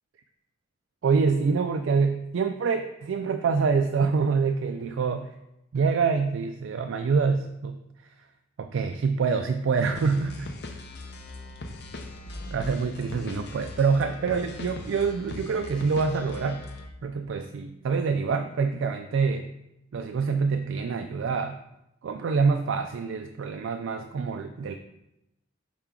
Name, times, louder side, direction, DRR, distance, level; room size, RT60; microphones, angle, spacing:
voice 1, 1.0-5.3 5.7-7.8 8.6-10.5 12.5-16.7 17.0-19.5 19.9-21.6 22.0-24.7, right 5 dB, 75° right, 7 dB, 0.3 m, -26 dB
sound 1, 9.9-16.9, left 2 dB, 55° left, 0.7 m, -40 dB
5.8 x 4.4 x 3.7 m, 0.88 s
head